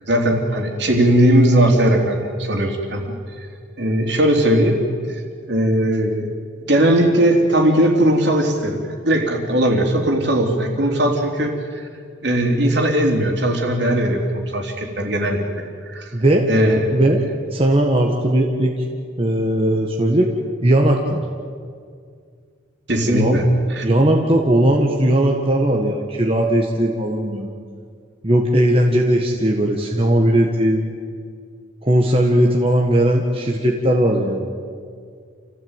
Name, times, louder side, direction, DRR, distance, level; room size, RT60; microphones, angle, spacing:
voice 1, 0.1-3.2 3.8-4.8 5.1-5.2 5.5-6.3 6.7-11.9 12.2-16.1 16.5-16.9 22.9-23.9, right 1 dB, 60° right, 2 dB, 3.5 m, -18 dB
voice 2, 16.1-16.5 16.9-17.2 17.5-18.7 19.2-20.3 20.6-21.2 23.0-23.4 23.8-27.5 28.2-30.8 31.8-34.5, right 1 dB, 30° right, 0 dB, 1.7 m, -18 dB
28.0 x 16.0 x 9.1 m, 2.2 s
head